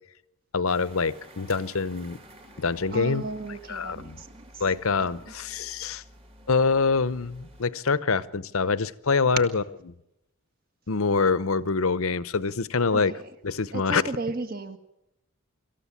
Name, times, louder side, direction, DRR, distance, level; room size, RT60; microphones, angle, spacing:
voice 1, 0.5-2.2 2.6-3.2 3.7-4.2 4.6-6.0 6.5-9.6 10.9-13.1 13.4-14.0, left 4 dB, 70° left, 0.8 m, -25 dB
sound 1, 0.7-7.6, right 1 dB, 25° right, 2.5 m, -51 dB
voice 2, 2.9-4.3 4.5-4.6 5.0-5.1 12.9-13.2 13.7-14.8, right 3 dB, 40° right, 1.8 m, -34 dB
25.5 x 14.5 x 7.3 m
head